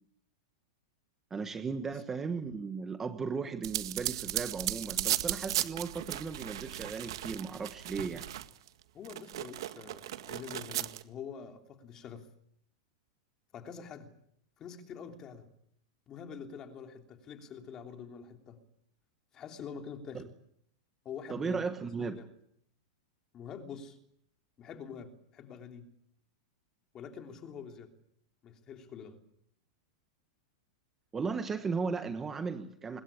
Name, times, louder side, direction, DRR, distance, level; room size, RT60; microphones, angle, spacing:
voice 1, 1.3-8.2 20.1-20.2 21.3-22.2 31.1-33.0, right 5 dB, 10° right, 8 dB, 1.3 m, -36 dB
sound 1, 3.6-8.7 9.0-11.0, right 13 dB, 70° right, 1.8 m, -36 dB
voice 2, 8.9-12.3 13.5-14.1 14.6-15.5 16.1-18.6 19.3-20.3 21.0-21.6 22.0-22.3 23.3-24.0 24.6-25.9 26.9-27.9 28.4-29.2, left 6 dB, 20° left, 5 dB, 3.2 m, -46 dB
25.5 x 21.5 x 8.7 m, 0.72 s
supercardioid pair, 170°, 3 cm